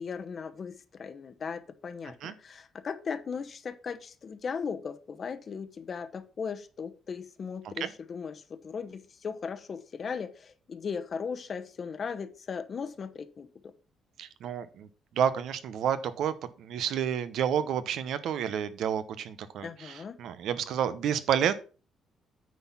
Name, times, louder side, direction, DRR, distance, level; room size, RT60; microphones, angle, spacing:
voice 1, 0.0-13.5 19.6-20.2, left 6 dB, 40° left, 12 dB, 0.8 m, -37 dB
voice 2, 14.2-14.9 15.2-21.5, right 8 dB, 75° right, 13 dB, 0.9 m, -30 dB
9.4 x 4.2 x 5.7 m, 0.36 s
cardioid pair, 135°, 0 cm